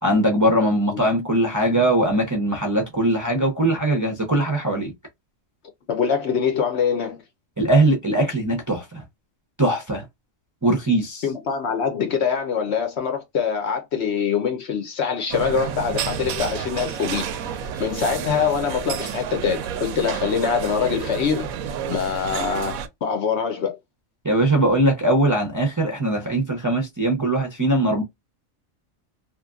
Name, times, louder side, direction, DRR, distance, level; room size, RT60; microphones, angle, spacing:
voice 1, 0.0-4.9 7.6-9.0 9.6-10.0 10.6-11.2 24.2-28.0, right 1 dB, 20° right, 0.5 m, -21 dB
voice 2, 5.9-7.2 11.2-17.3 17.6-23.8, left 6 dB, 60° left, 0.9 m, -24 dB
sound 1, 15.3-22.9, right 8 dB, 85° right, 1.0 m, -30 dB
2.9 x 2.5 x 2.3 m
omnidirectional pair, 1.4 m